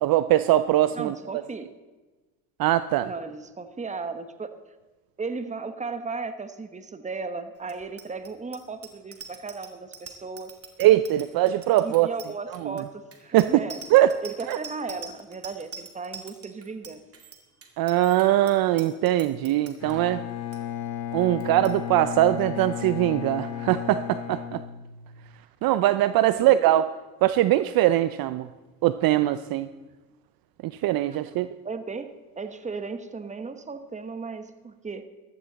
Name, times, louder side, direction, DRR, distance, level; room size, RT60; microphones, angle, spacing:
voice 1, 0.0-1.1 2.6-3.1 10.8-12.1 12.6-12.7 13.3-13.6 13.9-14.1 14.5-14.6 17.8-20.2 21.1-24.6 25.6-26.9 27.2-28.5 28.8-29.7 30.6-31.5, right 14 dB, 50° right, 14 dB, 0.6 m, -21 dB
voice 2, 0.9-1.7 3.0-4.5 5.2-10.5 11.8-13.8 14.2-17.0 26.3-26.6 31.1-31.2 31.6-32.1 32.4-35.0, right 4 dB, 15° right, 10 dB, 1.2 m, -35 dB
Bicycle bell, 7.6-19.9 20.3-20.6 20.8-21.1 21.4-21.7, right 5 dB, 30° right, 2.2 m, -44 dB
Bowed string instrument, 19.8-25.3, left 11 dB, 55° left, 2.1 m, -34 dB
15.0 x 12.5 x 4.1 m, 1.2 s
supercardioid pair, 95°, 44 cm